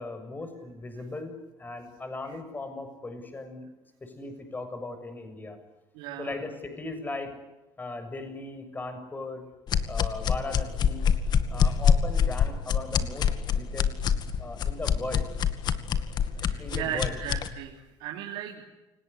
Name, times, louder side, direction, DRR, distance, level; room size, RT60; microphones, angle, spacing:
voice 1, 0.0-3.7 4.0-5.6 6.2-7.4 7.8-9.4 9.9-11.1 11.5-13.9 14.4-15.3 16.4-17.2, left 2 dB, 20° left, 8 dB, 7.0 m, -38 dB
voice 2, 6.0-6.3 16.4-18.6, right 10 dB, 90° right, 0 dB, 3.5 m, -36 dB
sound 1, 9.7-17.5, left 7 dB, 50° left, 2.2 m, -25 dB
29.0 x 18.0 x 10.0 m, 0.99 s
cardioid pair, 105°, 9 cm